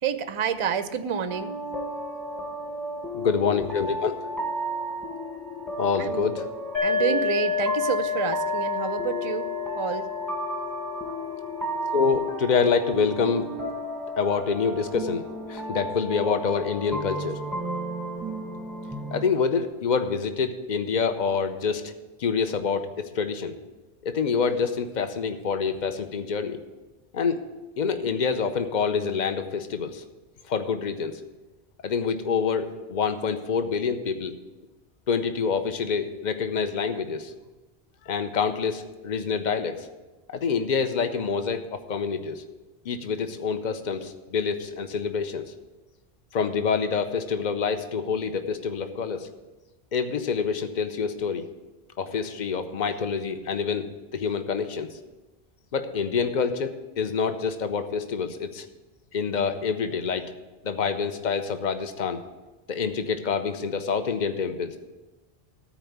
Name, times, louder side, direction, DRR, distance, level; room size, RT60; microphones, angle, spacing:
voice 1, 0.0-1.5 6.0-6.3 6.8-9.5 9.7-10.1, right 7 dB, 40° right, 11 dB, 0.5 m, -28 dB
sound 1, 1.3-19.2, right 1 dB, ahead, 0.9 m, -34 dB
voice 2, 3.1-4.1 5.8-6.5 11.9-13.5 14.2-17.4 19.1-21.9 22.2-23.6 24.0-26.6 27.1-27.4 27.8-30.0 30.5-31.2 31.8-34.3 35.1-37.3 38.0-39.9 40.3-42.4 42.8-45.5 46.3-49.3 49.9-51.5 52.0-54.9 55.7-58.6 59.1-60.3 60.6-62.2 62.7-64.8, left 5 dB, 50° left, 9 dB, 0.9 m, -26 dB
sound 2, 6.7-14.2, left 6 dB, 85° left, 2.4 m, -31 dB
13.0 x 4.7 x 8.0 m, 1.1 s
omnidirectional pair, 1.1 m